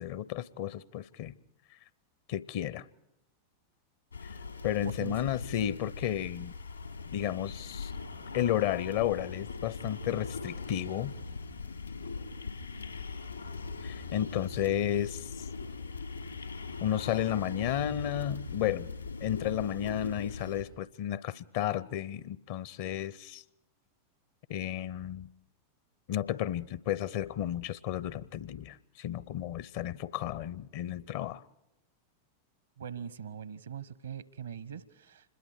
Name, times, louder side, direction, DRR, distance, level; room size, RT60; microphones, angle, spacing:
voice 1, 0.0-1.3 2.3-2.8 4.6-6.5 7.1-7.9 8.3-11.1 13.8-15.3 16.8-18.9 19.2-23.4 24.5-25.3 26.1-31.4, left 11 dB, 50° left, 0.7 m, -32 dB
sound 1, 4.1-20.6, left 4 dB, 85° left, 3.4 m, -40 dB
voice 2, 32.8-35.3, right 7 dB, 70° right, 1.0 m, -42 dB
26.5 x 21.5 x 4.8 m
figure-of-eight pair, 90°, 0 cm